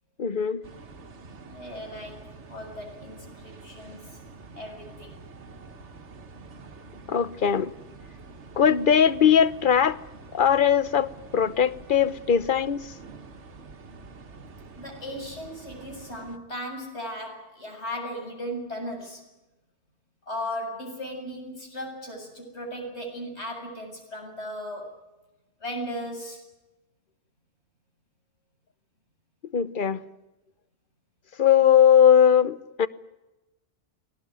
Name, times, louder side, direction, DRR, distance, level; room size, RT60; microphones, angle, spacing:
voice 1, 0.2-0.6 7.1-7.7 8.6-10.0 10.3-12.9 29.5-30.0 31.4-32.9, left 8 dB, 50° left, 1.1 m, -20 dB
sound 1, 0.6-16.4, right 3 dB, 80° right, 1.6 m, -47 dB
voice 2, 1.4-4.2 4.5-5.2 14.8-19.2 20.3-24.9 25.6-26.4, equal, 70° left, 7.9 m, -37 dB
23.0 x 18.5 x 9.5 m
omnidirectional pair, 1.2 m